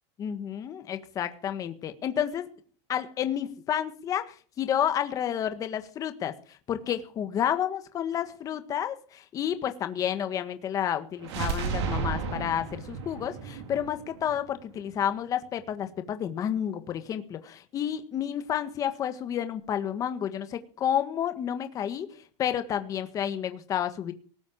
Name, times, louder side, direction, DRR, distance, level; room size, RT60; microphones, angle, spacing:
voice 1, 0.2-2.5 2.9-24.1, left 9 dB, 25° left, 9 dB, 1.6 m, -30 dB
sound 1, 11.2-15.1, right 5 dB, 75° right, 4.6 m, -33 dB
19.0 x 7.8 x 7.4 m, 0.41 s
supercardioid pair, 165°, 14 cm